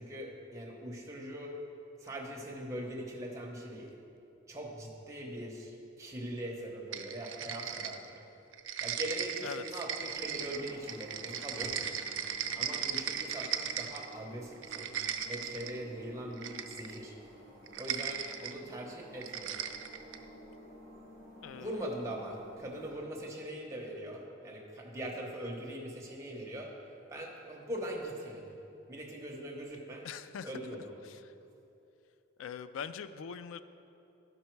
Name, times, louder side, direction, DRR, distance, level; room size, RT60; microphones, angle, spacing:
voice 1, 0.0-1.5 2.0-3.9 4.5-8.3 8.8-11.8 12.6-17.1 17.7-19.6 21.5-26.7 27.1-28.5 28.9-30.1 30.4-31.0, right 1 dB, 15° right, -2 dB, 0.9 m, -41 dB
sound 1, 6.9-8.2 8.5-14.1 14.5-15.8 16.4-17.0 17.7-18.5 19.2-20.2, right 8 dB, 75° right, 0.5 m, -37 dB
voice 2, 9.4-9.8 21.4-21.9 30.0-30.5 31.0-31.3 32.4-33.6, left 7 dB, 85° left, 13 dB, 0.3 m, -42 dB
sound 2, 10.1-23.0, right 1 dB, 15° left, 2.0 m, -53 dB
12.0 x 5.3 x 4.6 m, 2.7 s
head